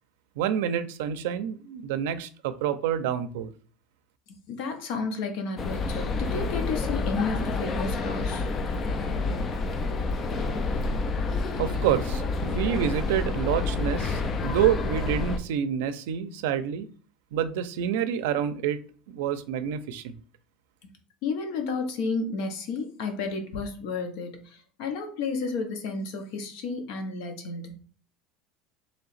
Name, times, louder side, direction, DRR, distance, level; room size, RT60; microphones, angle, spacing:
voice 1, 0.4-3.5 11.6-16.9 17.3-18.8 19.1-20.2, right 9 dB, 80° right, 11 dB, 0.4 m, -28 dB
voice 2, 4.5-8.5 21.2-27.8, left 4 dB, 55° left, 5 dB, 0.8 m, -32 dB
sound 1, 5.6-15.4, left 3 dB, 20° left, 0.3 m, -28 dB
3.1 x 2.8 x 4.1 m, 0.40 s
cardioid pair, 180°, 0 cm